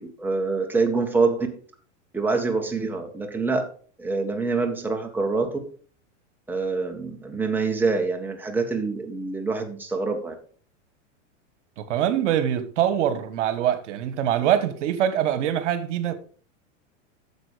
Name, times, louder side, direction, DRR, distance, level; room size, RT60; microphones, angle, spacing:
voice 1, 0.0-1.5 2.1-3.7 4.0-5.6 6.5-10.3, right 4 dB, 5° right, 1.5 m, -25 dB
voice 2, 11.8-16.1, right 10 dB, 70° right, 1.4 m, -24 dB
9.0 x 7.2 x 5.0 m
hypercardioid pair, 120°, 37 cm